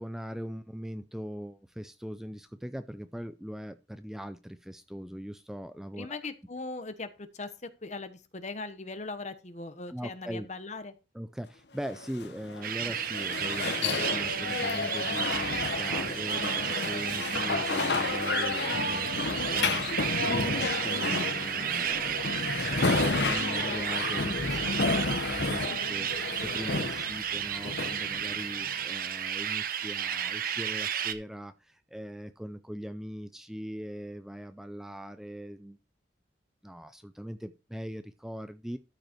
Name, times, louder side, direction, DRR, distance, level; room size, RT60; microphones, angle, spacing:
voice 1, 0.0-6.2 9.9-10.5 11.1-35.8 36.6-38.8, equal, 5° right, 0.4 m, -40 dB
voice 2, 5.9-10.9, left 3 dB, 40° left, 1.2 m, -39 dB
sound 1, 11.8-28.9, left 3 dB, 70° left, 0.9 m, -31 dB
sound 2, 12.6-31.1, right 9 dB, 55° right, 0.9 m, -32 dB
13.0 x 5.4 x 4.4 m
head